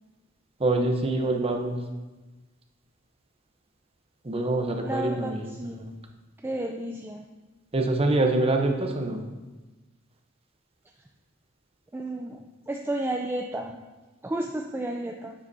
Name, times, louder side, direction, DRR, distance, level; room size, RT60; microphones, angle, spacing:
voice 1, 0.6-1.8 4.2-5.5 5.8-5.9 7.7-9.2, right 2 dB, 30° right, 3 dB, 0.7 m, -25 dB
voice 2, 4.8-5.9 6.4-7.3 11.9-13.8 14.2-15.3, right 1 dB, 10° right, 2 dB, 0.3 m, -32 dB
9.7 x 7.6 x 2.7 m, 1.2 s
head